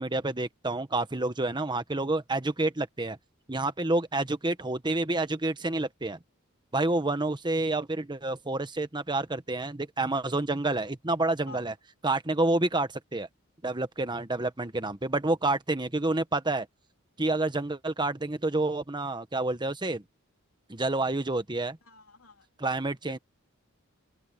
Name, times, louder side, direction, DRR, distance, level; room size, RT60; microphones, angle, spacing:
voice 1, 0.0-3.2 3.5-6.2 6.7-11.7 12.0-13.3 13.6-16.7 17.2-20.0 20.7-21.8 22.6-23.2, right 2 dB, 20° right, 1.2 m, -28 dB
voice 2, 21.8-22.8 23.1-23.2, left 4 dB, 90° left, 3.3 m, -49 dB
open air
head